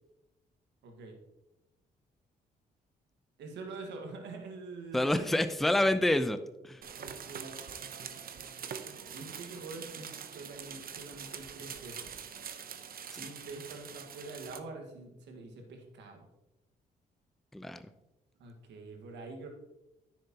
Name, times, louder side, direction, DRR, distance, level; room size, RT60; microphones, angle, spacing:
voice 1, 0.8-1.2 3.4-5.5 7.0-7.6 9.1-12.2 13.2-16.3 18.4-19.5, right 3 dB, 80° right, 3 dB, 1.6 m, -45 dB
voice 2, 4.9-6.8 13.1-13.2 17.5-17.8, left 1 dB, ahead, 11 dB, 0.6 m, -28 dB
sound 1, 6.8-14.6, right 7 dB, 55° right, 0.8 m, -44 dB
9.8 x 6.8 x 2.9 m, 0.94 s
supercardioid pair, 60°, 18 cm